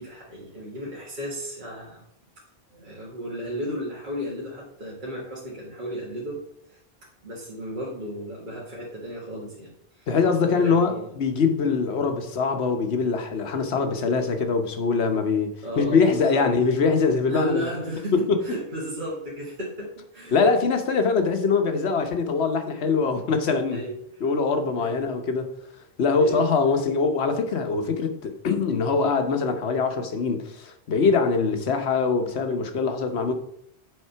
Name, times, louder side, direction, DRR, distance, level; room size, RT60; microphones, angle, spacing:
voice 1, 0.0-2.0 2.7-6.8 7.2-9.7 10.0-10.1 10.3-11.1 15.6-16.4 17.3-20.4 23.7-24.0 24.7-24.9 26.1-26.5, equal, 50° right, 1.7 m, -34 dB
voice 2, 10.1-17.7 18.3-18.4 20.3-23.8 24.2-25.5 26.0-33.3, left 4 dB, 85° left, 1.2 m, -23 dB
7.9 x 3.7 x 5.6 m
omnidirectional pair, 1.1 m